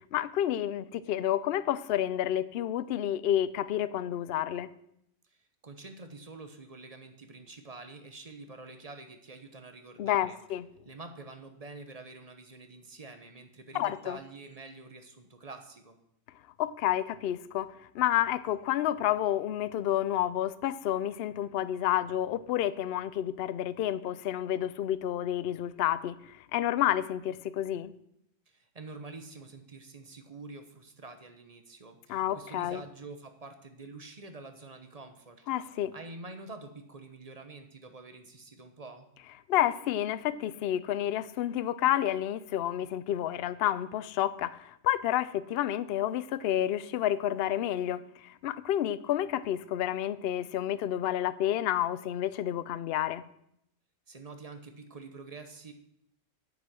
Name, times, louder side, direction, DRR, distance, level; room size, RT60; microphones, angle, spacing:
voice 1, 0.1-4.7 10.0-10.6 13.7-14.2 16.6-27.9 32.1-32.8 35.5-35.9 39.5-53.2, left 12 dB, 60° left, 0.7 m, -30 dB
voice 2, 5.3-10.4 10.8-16.0 28.5-35.5 35.9-39.1 54.1-55.7, right 3 dB, 30° right, 1.0 m, -47 dB
9.4 x 8.2 x 6.2 m
omnidirectional pair, 1.4 m